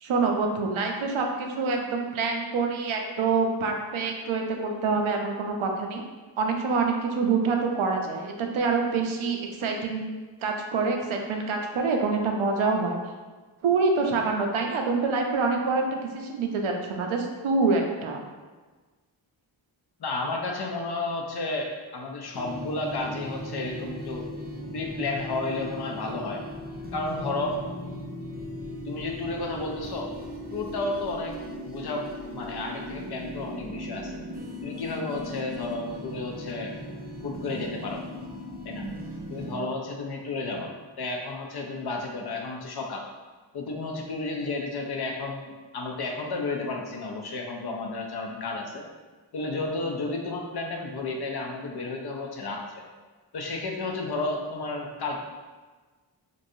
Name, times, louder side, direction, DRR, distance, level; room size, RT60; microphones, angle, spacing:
voice 1, 0.0-6.0 6.4-10.1 10.4-13.0 13.6-18.2, right 4 dB, 85° right, 2 dB, 0.6 m, -26 dB
voice 2, 20.0-24.3 24.7-26.4 26.9-27.6 28.9-30.1 30.5-31.3 31.6-34.2 34.6-36.7 37.2-38.0 38.6-38.8 39.3-43.0 43.5-48.9 49.3-52.8 53.3-55.2, left 2 dB, 55° left, 1 dB, 0.5 m, -32 dB
sound 1, 22.3-39.5, left 1 dB, 20° right, 0.4 m, -38 dB
3.1 x 2.5 x 2.6 m, 1.3 s
wide cardioid pair, 110°, 47 cm